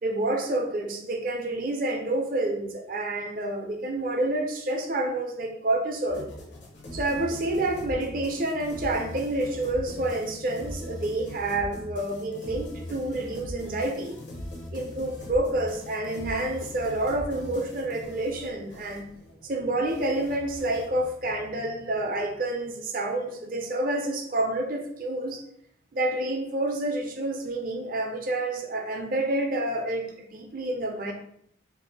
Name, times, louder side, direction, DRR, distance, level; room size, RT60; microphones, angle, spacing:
voice 1, 0.0-6.3 6.9-14.2 14.7-19.1 19.4-25.4 25.9-31.1, right 1 dB, 45° right, 3 dB, 0.5 m, -28 dB
sound 1, 6.1-21.1, left 1 dB, 75° left, 0.7 m, -41 dB
2.6 x 2.4 x 4.0 m, 0.71 s
head